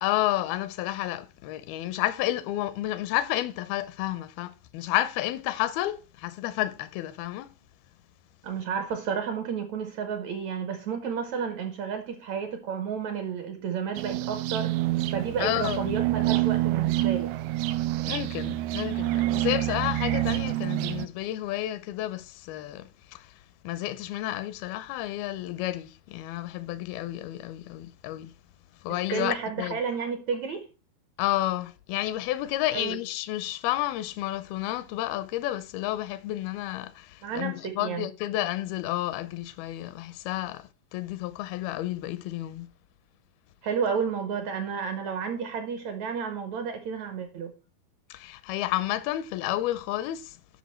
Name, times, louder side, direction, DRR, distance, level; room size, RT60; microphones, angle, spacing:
voice 1, 0.0-7.5 15.4-16.0 18.1-23.3 23.6-28.3 28.8-29.8 31.2-42.7 48.1-50.4, left 14 dB, 90° left, 2.5 m, -31 dB
voice 2, 8.4-14.8 15.1-17.3 28.9-30.7 32.7-33.0 37.2-38.1 43.6-47.5, right 6 dB, 70° right, 1.7 m, -31 dB
sound 1, 14.0-21.1, right 16 dB, 90° right, 2.5 m, -27 dB
10.5 x 5.8 x 4.3 m
omnidirectional pair, 4.3 m